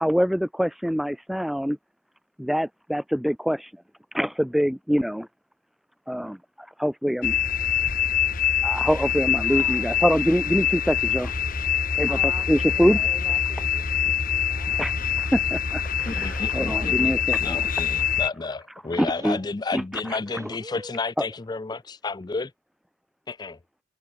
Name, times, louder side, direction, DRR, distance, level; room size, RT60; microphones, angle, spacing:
voice 1, 0.0-1.8 2.4-3.7 4.1-5.3 6.1-6.4 6.8-7.4 8.6-11.3 12.0-13.1 14.8-17.6 19.0-19.4 19.7-19.8, equal, ahead, 0.9 m, -24 dB
sound 1, 7.2-18.3, left 8 dB, 45° left, 1.1 m, -25 dB
voice 2, 9.4-10.1 12.1-15.0 16.7-16.9 18.9-19.5 20.3-21.0, right 1 dB, 15° right, 7.8 m, -44 dB
voice 3, 16.0-17.1 17.4-22.5 23.3-23.6, left 3 dB, 20° left, 0.4 m, -31 dB
head